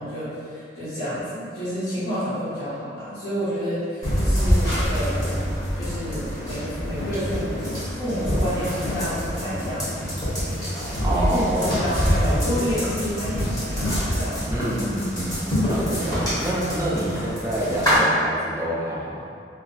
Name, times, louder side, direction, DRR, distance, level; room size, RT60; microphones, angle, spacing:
voice 1, 0.0-7.6 8.0-10.0 11.1-14.4, equal, 60° left, -13 dB, 1.3 m, -29 dB
sound 1, 4.0-18.0, equal, 20° left, 0.9 m, -25 dB
voice 2, 11.0-11.9 12.1-12.9 14.5-19.3, right 1 dB, 15° right, -5 dB, 0.4 m, -28 dB
2.5 x 2.1 x 3.9 m, 2.3 s
head